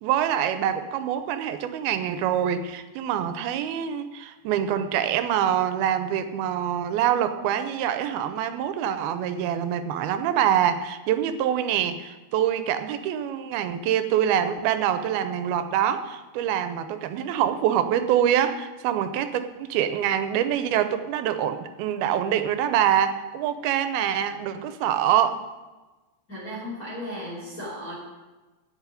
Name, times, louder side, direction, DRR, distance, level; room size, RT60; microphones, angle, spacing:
voice 1, 0.0-25.4, right 10 dB, 90° right, 10 dB, 2.7 m, -25 dB
voice 2, 26.3-27.9, equal, 25° left, -7 dB, 3.4 m, -35 dB
8.2 x 8.0 x 9.1 m, 1.2 s
omnidirectional pair, 4.3 m